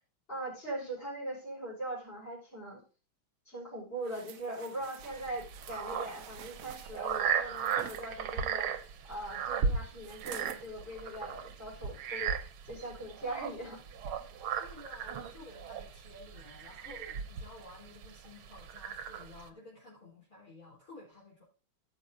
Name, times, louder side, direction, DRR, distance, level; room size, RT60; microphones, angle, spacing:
voice 1, 0.3-2.8 3.5-13.8, right 1 dB, 25° left, -4 dB, 5.7 m, -41 dB
sound 1, 4.0-8.0 10.0-10.7 11.2-11.3, right 9 dB, 70° right, 0.8 m, -49 dB
sound 2, 5.0-19.5, right 7 dB, 90° right, 1.7 m, -37 dB
voice 2, 14.5-21.4, left 1 dB, 45° left, -8 dB, 4.4 m, -52 dB
16.5 x 6.9 x 2.7 m, 0.35 s
omnidirectional pair, 2.2 m